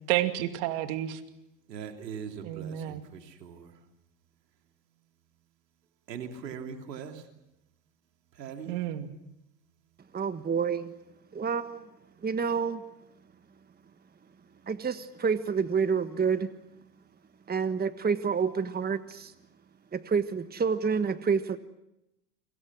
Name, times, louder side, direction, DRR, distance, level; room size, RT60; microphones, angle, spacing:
voice 1, 0.1-1.2 2.4-3.0 8.7-9.1, right 14 dB, 65° right, 7 dB, 2.7 m, -30 dB
voice 2, 1.7-3.7 6.1-7.3 8.3-8.7, right 7 dB, 85° right, 4 dB, 3.2 m, -41 dB
voice 3, 10.1-10.9 11.3-11.8 12.2-12.8 14.7-16.5 17.5-19.3 19.9-21.6, right 6 dB, 20° right, 11 dB, 1.4 m, -28 dB
29.0 x 24.5 x 6.2 m, 0.87 s
hypercardioid pair, 80°, 48 cm